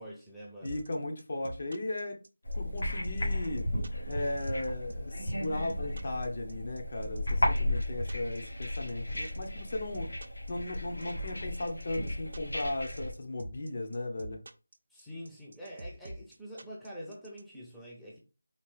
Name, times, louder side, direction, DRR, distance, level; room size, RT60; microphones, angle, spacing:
voice 1, 0.0-0.8 14.9-18.2, equal, ahead, 0.7 m, -45 dB
voice 2, 0.6-2.2 2.5-3.7 4.1-10.1 10.5-14.4, left 2 dB, 40° left, 0.8 m, -36 dB
sound 1, 0.6-17.4, right 1 dB, 55° right, 0.6 m, -45 dB
sound 2, 2.4-13.1, left 1 dB, 90° left, 2.0 m, -34 dB
4.4 x 3.3 x 3.2 m
figure-of-eight pair, 170°, 0 cm